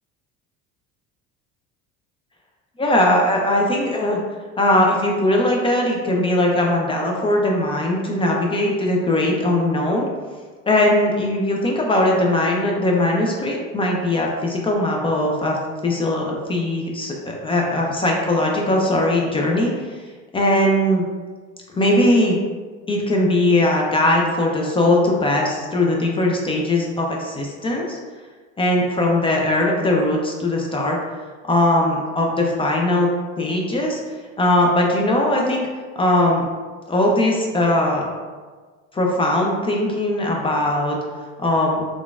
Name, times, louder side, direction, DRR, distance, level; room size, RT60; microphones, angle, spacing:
voice 1, 2.8-4.2 4.6-10.1 10.7-15.6 15.8-20.0 20.3-21.0 21.7-22.4 22.9-28.0 28.6-31.0 31.5-33.1 33.4-34.0 34.4-35.7 36.0-36.4 36.9-38.1 38.9-41.0 41.4-41.8, left 1 dB, 20° left, -1 dB, 0.3 m, -20 dB
3.7 x 2.4 x 2.3 m, 1.4 s
cardioid pair, 125°, 30 cm